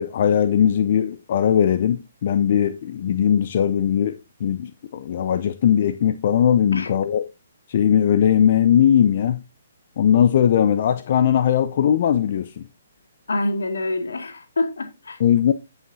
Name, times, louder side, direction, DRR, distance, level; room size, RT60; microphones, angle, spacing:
voice 1, 0.0-7.3 7.7-9.4 10.0-12.6 15.2-15.5, left 9 dB, 50° left, 0.6 m, -19 dB
voice 2, 13.3-15.2, left 2 dB, 70° left, 2.1 m, -26 dB
16.0 x 5.7 x 2.7 m
figure-of-eight pair, 130°, 0 cm